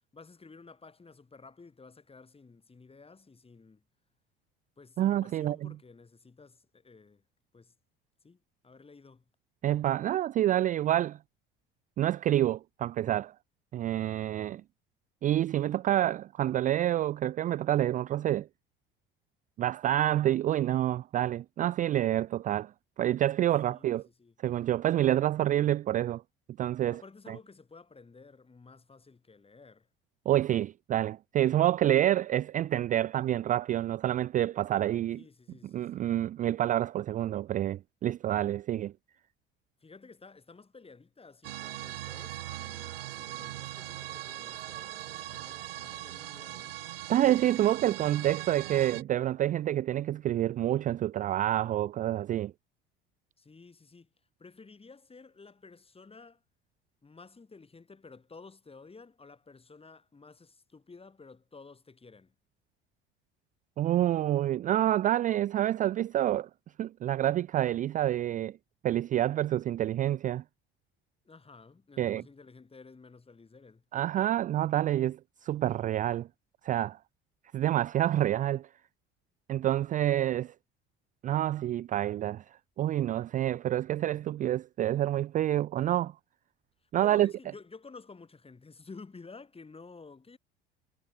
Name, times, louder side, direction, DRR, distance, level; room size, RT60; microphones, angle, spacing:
voice 1, 0.1-3.8 4.8-7.2 7.5-7.7 8.2-9.2 23.6-24.3 26.9-29.9 35.1-36.1 39.8-46.8 53.4-54.1 54.4-56.4 57.0-62.3 71.2-73.8 87.0-90.4, left 4 dB, 20° left, 6.6 m, -52 dB
voice 2, 5.0-5.7 9.6-11.2 12.0-13.3 13.7-14.6 15.2-18.5 19.6-22.7 23.0-24.0 24.4-26.2 26.6-27.0 27.3-27.4 30.3-35.2 35.7-38.9 47.1-52.5 63.8-66.5 66.8-68.6 68.8-70.4 72.0-72.2 73.9-76.3 76.6-77.0 77.5-78.7 79.5-80.5 81.2-82.4 82.8-86.1 86.9-87.3, right 12 dB, 25° right, 0.4 m, -28 dB
sound 1, 41.4-49.0, right 14 dB, 70° right, 0.9 m, -40 dB
figure-of-eight pair, 60°, 29 cm